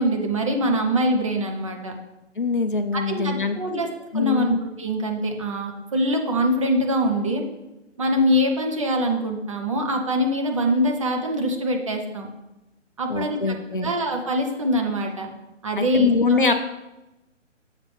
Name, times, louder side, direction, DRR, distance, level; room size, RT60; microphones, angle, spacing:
voice 1, 0.0-1.9 2.9-3.9 4.1-4.5 4.8-7.4 8.0-12.3 13.0-15.3 15.6-16.4, equal, 25° right, 2 dB, 0.7 m, -24 dB
voice 2, 2.4-3.8 4.1-4.6 13.1-13.9 15.8-16.5, left 4 dB, 45° left, 7 dB, 0.4 m, -23 dB
7.3 x 6.1 x 3.3 m, 0.97 s
figure-of-eight pair, 140°, 38 cm